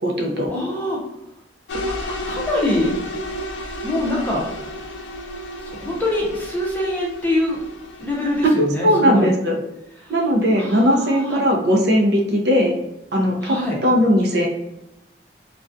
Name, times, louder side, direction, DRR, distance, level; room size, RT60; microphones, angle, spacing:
voice 1, 0.0-0.5 8.6-9.6 10.1-12.7 13.1-13.5 13.8-14.5, equal, 60° right, 1 dB, 0.5 m, -18 dB
voice 2, 0.5-1.0 1.9-2.0 2.3-3.0 3.8-4.5 5.6-7.6 8.0-9.3 10.0-10.2 10.6-11.4 13.4-13.8, left 1 dB, 10° left, -4 dB, 0.5 m, -24 dB
sound 1, 1.7-8.4, equal, 85° left, 0.4 m, -32 dB
2.3 x 2.2 x 2.5 m, 0.86 s
head